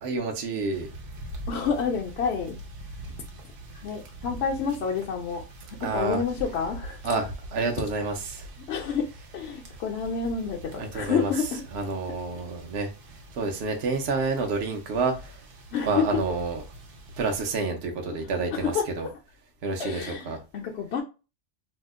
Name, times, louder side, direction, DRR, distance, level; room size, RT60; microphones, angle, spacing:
voice 1, 0.0-0.9 5.8-6.2 7.0-8.5 10.8-12.9 13.3-15.4 15.9-16.6 17.2-19.1 19.6-20.4, right 3 dB, 65° right, 0.9 m, -29 dB
sound 1, 0.7-17.5, right 1 dB, 90° right, 1.1 m, -43 dB
voice 2, 1.5-2.6 3.0-3.2 3.8-5.4 5.7-7.0 8.7-9.1 9.3-11.6 15.7-16.2 18.5-18.8 19.8-21.0, left 6 dB, 70° left, 0.8 m, -29 dB
2.8 x 2.1 x 3.5 m
omnidirectional pair, 1.2 m